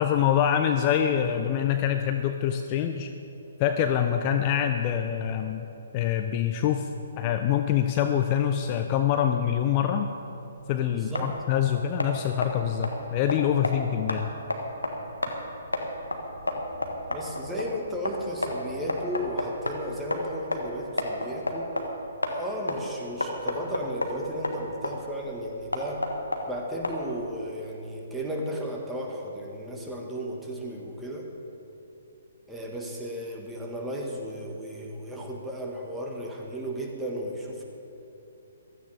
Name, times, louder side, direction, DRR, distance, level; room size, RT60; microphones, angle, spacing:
voice 1, 0.0-3.1 3.6-5.7 5.9-6.9 7.2-10.1 10.7-14.3, left 9 dB, 30° left, 6 dB, 0.5 m, -25 dB
sound 1, 10.5-27.3, left 1 dB, 85° left, 1.5 m, -33 dB
voice 2, 10.9-11.3 17.1-21.8 22.3-26.1 26.5-31.3 32.5-37.6, equal, 5° right, -1 dB, 1.6 m, -34 dB
16.0 x 13.5 x 3.5 m, 2.9 s
figure-of-eight pair, 130°, 0 cm